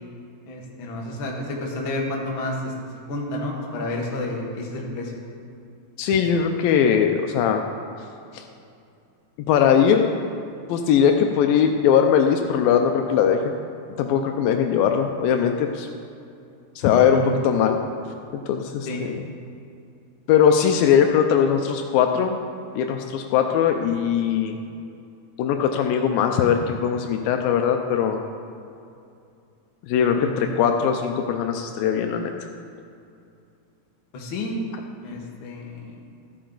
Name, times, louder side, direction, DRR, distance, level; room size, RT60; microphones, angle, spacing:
voice 1, 0.5-2.7 3.1-5.2 17.0-17.2 18.8-19.0 30.2-30.5 34.1-34.6 35.0-35.9, left 1 dB, 60° left, -2 dB, 1.4 m, -30 dB
voice 2, 6.0-7.6 8.3-8.4 9.5-10.1 10.7-13.6 14.0-15.9 16.8-17.8 18.3-19.2 20.3-22.4 22.7-24.6 25.4-28.2 29.8-32.5, left 8 dB, 80° left, 4 dB, 2.2 m, -20 dB
13.5 x 8.5 x 3.9 m, 2.5 s
omnidirectional pair, 4.4 m